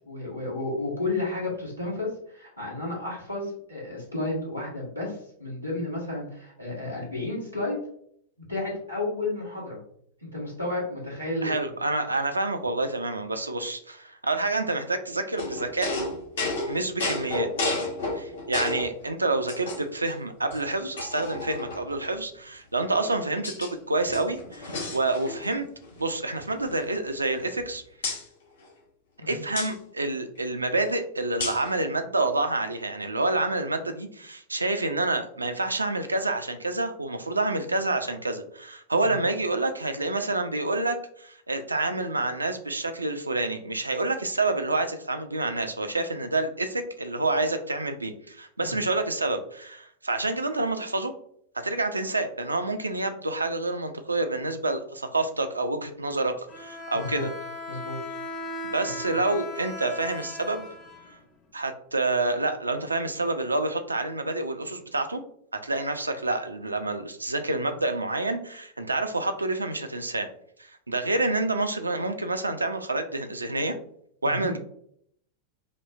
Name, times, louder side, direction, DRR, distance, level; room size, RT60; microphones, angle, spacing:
voice 1, 0.0-7.8 8.5-9.8 10.2-11.8 29.2-29.4 39.0-39.2 48.6-48.7 56.9-57.2 57.7-58.2 74.2-74.5, left 2 dB, 90° left, -6 dB, 1.5 m, -32 dB
voice 2, 11.4-15.9 16.7-17.5 18.1-25.7 26.0-27.8 29.3-51.1 51.5-57.3 58.6-60.7 61.5-65.2 65.6-70.3 70.6-73.8 74.2-74.6, right 2 dB, 80° right, 7 dB, 0.4 m, -28 dB
sound 1, 15.4-18.9 19.5-20.1 20.5-20.6 21.0-22.0 22.8-23.7 24.0-25.6 25.8-26.0 26.4-27.6 28.0-28.2 29.5-29.7 31.4-31.7, left 2 dB, 65° left, 0.7 m, -32 dB
Bowed string instrument, 56.5-61.5, left 2 dB, 30° left, 0.6 m, -38 dB
5.0 x 2.0 x 2.4 m, 0.67 s
figure-of-eight pair, 90°, 0 cm